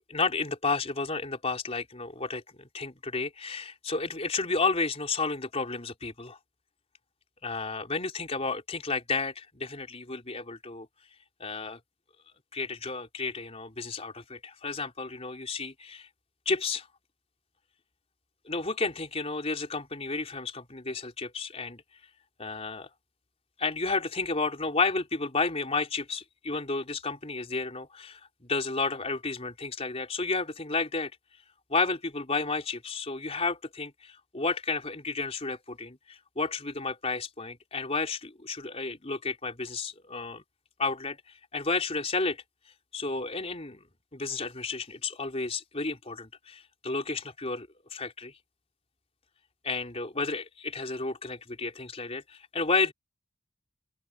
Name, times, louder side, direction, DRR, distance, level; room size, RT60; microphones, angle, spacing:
voice 1, 0.1-6.4 7.4-10.9 11.4-11.8 12.5-16.1 16.5-16.9 18.5-21.8 22.4-22.9 23.6-31.1 31.7-40.4 40.8-41.2 41.5-42.4 42.9-43.8 44.1-48.3 49.6-52.9, left 3 dB, 30° left, 3.7 m, -32 dB
open air
head